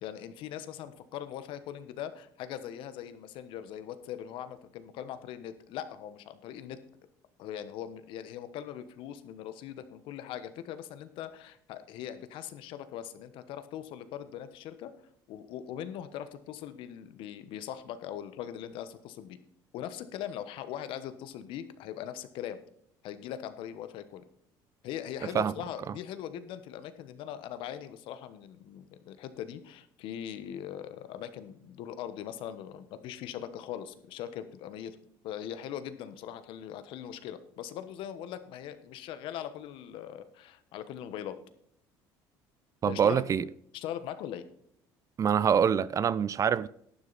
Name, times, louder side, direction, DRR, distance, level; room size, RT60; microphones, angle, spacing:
voice 1, 0.0-6.8 7.4-14.9 15.3-19.4 19.7-22.6 23.0-24.2 24.8-35.0 35.2-41.4 42.9-43.2 43.7-44.5, left 10 dB, 70° left, 1.1 m, -41 dB
voice 2, 42.8-43.5 45.2-46.7, right 7 dB, 40° right, 0.4 m, -25 dB
11.5 x 9.8 x 4.0 m
supercardioid pair, 95°, 9 cm